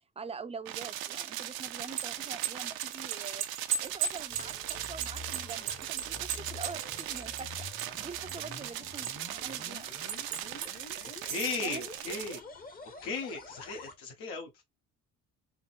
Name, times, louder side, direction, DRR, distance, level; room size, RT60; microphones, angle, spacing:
voice 1, 0.2-3.5 3.8-7.6 8.0-9.9 11.6-11.8, right 5 dB, 15° right, 0.5 m, -44 dB
sound 1, 0.7-12.4, right 12 dB, 70° right, 0.5 m, -39 dB
sound 2, 1.7-8.0 8.3-9.5 10.1-10.7 11.1-11.6, right 8 dB, 85° right, 0.9 m, -36 dB
sound 3, 3.8-14.0, left 4 dB, 25° left, 0.8 m, -48 dB
voice 2, 11.2-12.4 13.0-14.6, left 4 dB, 85° left, 1.3 m, -36 dB
3.8 x 2.0 x 2.6 m
supercardioid pair, 75°, 38 cm